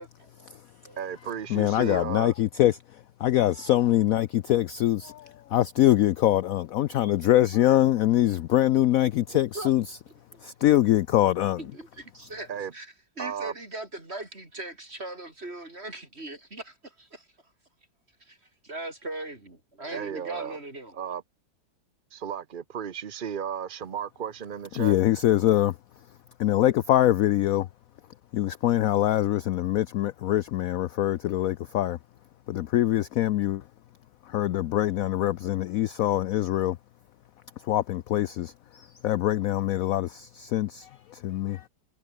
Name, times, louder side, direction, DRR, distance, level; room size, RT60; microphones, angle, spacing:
voice 1, 1.0-2.3 12.5-12.7 13.2-13.5 19.9-20.6 20.9-21.2 22.1-25.0, right 8 dB, 55° right, 0.5 m, -34 dB
voice 2, 1.5-2.8 3.2-9.8 10.4-11.6 24.8-25.8 26.4-27.7 28.3-32.0 32.5-33.6 34.3-36.8 37.6-41.7, left 13 dB, 75° left, 0.8 m, -24 dB
voice 3, 10.3-10.7 11.6-17.3 18.2-21.0, right 2 dB, 35° right, 5.2 m, -40 dB
omnidirectional pair, 2.0 m